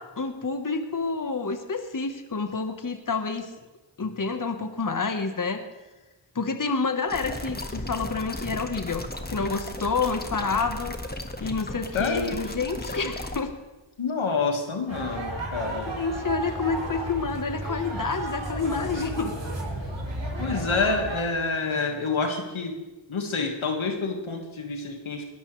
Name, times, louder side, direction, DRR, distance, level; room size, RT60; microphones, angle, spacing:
voice 1, 0.0-3.5 4.0-5.6 6.3-11.0 11.4-13.5 16.0-19.3, left 4 dB, 40° left, 7 dB, 1.4 m, -28 dB
sound 1, 7.1-13.4, left 1 dB, 20° left, 1.6 m, -35 dB
voice 2, 11.9-12.3 14.0-15.9 20.4-22.8 23.1-25.2, left 4 dB, 85° left, 3 dB, 1.9 m, -27 dB
sound 2, 14.9-21.2, right 2 dB, 85° right, 6.4 m, -33 dB
21.0 x 13.0 x 3.3 m, 1.1 s
cardioid pair, 40°, 47 cm